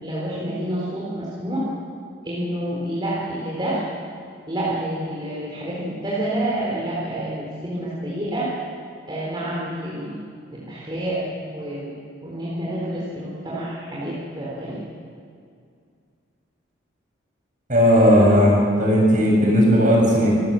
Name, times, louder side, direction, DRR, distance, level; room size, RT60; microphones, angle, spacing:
voice 1, 0.0-1.7 2.2-3.8 4.5-8.5 9.1-10.2 10.5-11.9 12.2-14.8, right 1 dB, 25° right, -7 dB, 3.9 m, -28 dB
voice 2, 17.7-20.3, equal, 40° right, -1 dB, 6.7 m, -16 dB
26.5 x 15.0 x 7.6 m, 2.3 s
head